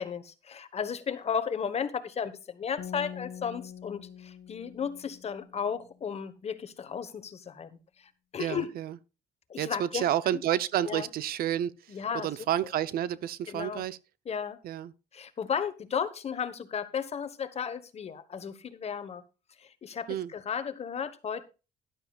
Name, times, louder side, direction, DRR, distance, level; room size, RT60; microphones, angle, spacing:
voice 1, 0.0-7.7 8.0-8.7 9.5-10.4 10.8-11.1 11.9-12.3 13.5-13.9 14.2-14.6 15.1-19.2 19.6-21.4, left 7 dB, 40° left, 1.2 m, -34 dB
sound 1, 2.8-6.0, left 9 dB, 65° left, 1.8 m, -45 dB
voice 2, 8.4-8.9 9.6-14.0 14.6-14.9 20.1-20.3, right 11 dB, 60° right, 0.6 m, -30 dB
12.5 x 11.5 x 2.4 m
cardioid pair, 110°, 17 cm